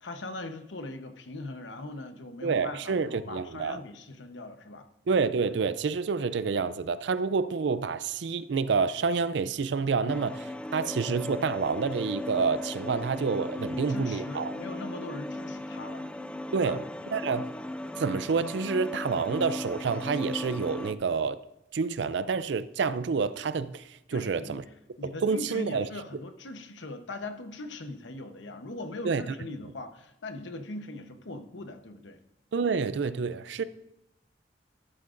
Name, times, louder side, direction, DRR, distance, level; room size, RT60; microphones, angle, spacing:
voice 1, 0.0-4.9 13.7-16.0 16.5-16.8 24.1-24.6 25.0-32.2, left 2 dB, 80° left, 1.0 m, -40 dB
voice 2, 2.4-3.8 5.1-14.5 16.5-16.8 17.1-17.5 18.0-21.4 21.7-24.6 25.0-25.9 29.0-29.2 32.5-33.6, right 5 dB, 70° right, 0.4 m, -28 dB
sound 1, 10.1-20.9, left 1 dB, 5° left, 0.3 m, -37 dB
13.0 x 12.0 x 2.5 m
head